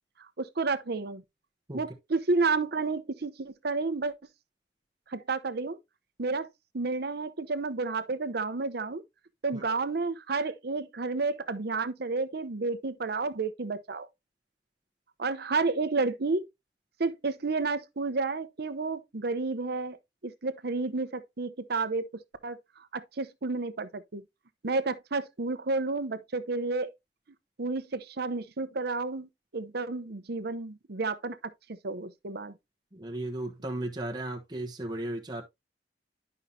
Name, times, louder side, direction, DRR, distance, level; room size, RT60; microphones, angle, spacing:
voice 1, 0.4-1.2 1.7-4.1 5.1-5.8 6.2-6.5 6.7-9.0 9.4-14.1 15.2-16.5 17.0-20.0 20.2-22.1 22.4-24.2 24.6-26.9 27.6-31.5 31.8-32.5, right 3 dB, 60° right, 0.8 m, -31 dB
voice 2, 32.9-35.4, right 1 dB, 25° right, 1.1 m, -35 dB
11.0 x 5.6 x 2.7 m
head